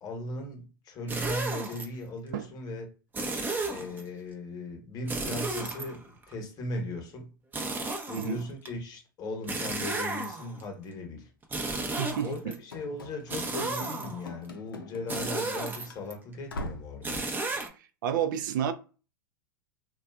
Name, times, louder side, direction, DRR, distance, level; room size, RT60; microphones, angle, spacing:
voice 1, 0.0-2.9 3.7-7.3 8.1-11.3 12.2-17.2, left 2 dB, 35° left, 1.0 m, -38 dB
sound 1, 1.1-1.8 3.1-4.0 5.1-6.3 7.5-8.7 9.5-10.6 11.4-12.6 13.3-14.3 15.1-16.1 17.0-17.7, right 3 dB, 15° right, 0.7 m, -33 dB
voice 2, 8.1-8.4 11.8-12.6 18.0-18.7, right 9 dB, 65° right, 0.5 m, -30 dB
Run / Slam, 12.7-15.6 15.9-16.0 16.5-17.0, left 1 dB, 85° left, 0.5 m, -42 dB
2.6 x 2.3 x 2.3 m
hypercardioid pair, 100°, 11 cm